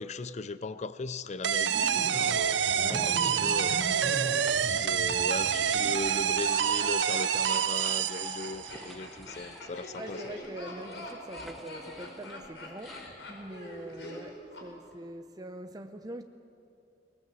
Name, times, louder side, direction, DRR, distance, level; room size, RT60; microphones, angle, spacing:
voice 1, 0.0-3.9 4.6-10.3, left 3 dB, 35° left, 0.5 m, -38 dB
sound 1, 1.4-8.8, right 8 dB, 70° right, 0.6 m, -27 dB
Laughter, 1.6-14.7 14.9-15.0, left 1 dB, 70° left, 4.9 m, -41 dB
sound 2, 1.7-3.1 3.5-3.8 4.3-6.1 6.5-6.6 7.5-13.1, equal, ahead, 1.0 m, -52 dB
voice 2, 2.7-3.2 3.9-4.3 10.0-13.0 13.3-16.2, right 1 dB, 20° right, 0.6 m, -43 dB
23.5 x 19.5 x 7.5 m
head